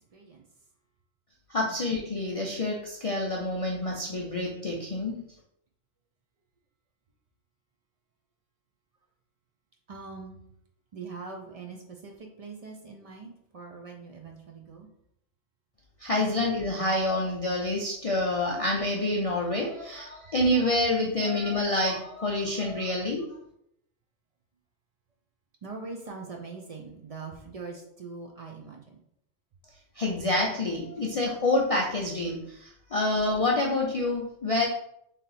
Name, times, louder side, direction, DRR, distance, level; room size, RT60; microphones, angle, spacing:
voice 1, 0.1-0.4 1.6-1.8 9.9-10.4 10.9-14.9 16.1-16.3 25.6-29.0 31.0-31.2, right 4 dB, 70° right, 1 dB, 0.3 m, -42 dB
voice 2, 1.5-5.2 16.0-23.3 30.0-34.7, left 2 dB, 60° left, -2 dB, 0.3 m, -27 dB
3.3 x 2.8 x 4.0 m, 0.75 s
omnidirectional pair, 1.3 m